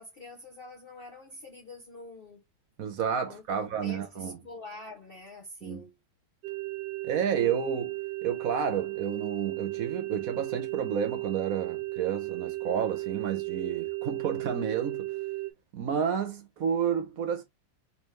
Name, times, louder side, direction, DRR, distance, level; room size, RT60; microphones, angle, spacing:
voice 1, 0.0-2.4 3.3-5.9, left 2 dB, 50° left, 0.7 m, -46 dB
voice 2, 2.8-4.4 5.6-5.8 7.0-15.1 15.7-17.4, right 7 dB, 60° right, 1.1 m, -31 dB
sound 1, 6.4-15.5, right 21 dB, 85° right, 1.3 m, -35 dB
3.4 x 3.4 x 3.0 m
omnidirectional pair, 1.9 m